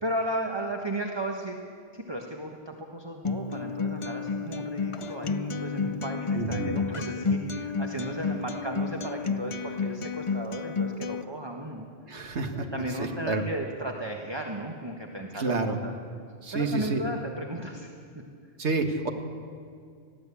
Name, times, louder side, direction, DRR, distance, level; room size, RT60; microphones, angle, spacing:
voice 1, 0.0-11.9 12.5-15.9 16.5-17.9, right 1 dB, 20° right, 1 dB, 1.3 m, -35 dB
Acoustic guitar, 3.2-11.2, left 4 dB, 35° left, 0.5 m, -31 dB
voice 2, 6.3-6.8 12.1-12.7 13.0-13.4 15.4-15.8 16.4-17.0 18.6-19.1, right 3 dB, 65° right, 5 dB, 1.9 m, -29 dB
20.5 x 15.0 x 8.4 m, 2.2 s
omnidirectional pair, 1.2 m